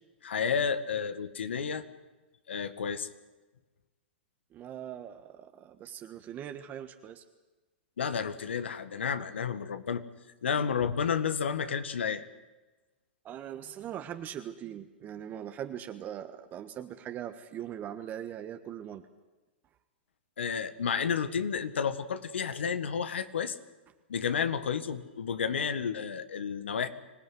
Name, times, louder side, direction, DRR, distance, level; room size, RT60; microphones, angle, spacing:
voice 1, 0.2-1.8 2.5-3.1 8.0-10.0 10.4-12.3 20.4-23.6 24.1-26.9, left 6 dB, 80° left, 11 dB, 1.9 m, -31 dB
voice 2, 4.5-7.2 13.2-19.0, right 10 dB, 30° right, 7 dB, 1.5 m, -41 dB
25.5 x 16.5 x 9.5 m, 1.2 s
hypercardioid pair, 120°, 6 cm